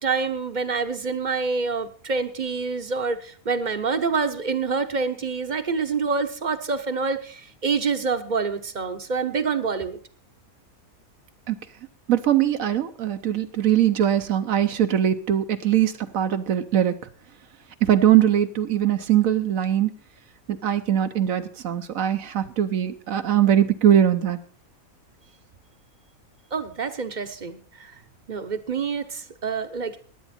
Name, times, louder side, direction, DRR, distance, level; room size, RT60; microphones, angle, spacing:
voice 1, 0.0-10.0 26.5-27.9 28.3-30.0, right 5 dB, 35° right, 9 dB, 0.9 m, -27 dB
voice 2, 12.1-17.0 17.8-19.9 20.5-24.4, right 10 dB, 70° right, 9 dB, 1.2 m, -21 dB
16.0 x 10.0 x 4.3 m, 0.42 s
omnidirectional pair, 1.5 m